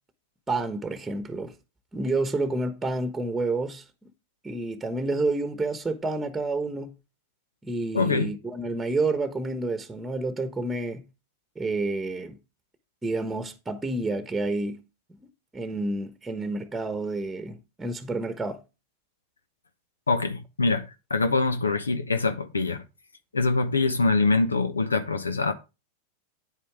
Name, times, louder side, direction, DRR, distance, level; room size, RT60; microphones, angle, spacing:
voice 1, 0.5-1.5 1.9-3.8 4.4-6.9 7.6-11.0 11.6-12.4 13.0-14.8 15.5-18.6, right 2 dB, 10° right, 1.2 m, -29 dB
voice 2, 7.9-8.3 20.1-20.8 21.1-22.8 23.3-25.5, left 3 dB, 85° left, 0.9 m, -24 dB
9.4 x 8.5 x 3.6 m
figure-of-eight pair, 90°, 0 cm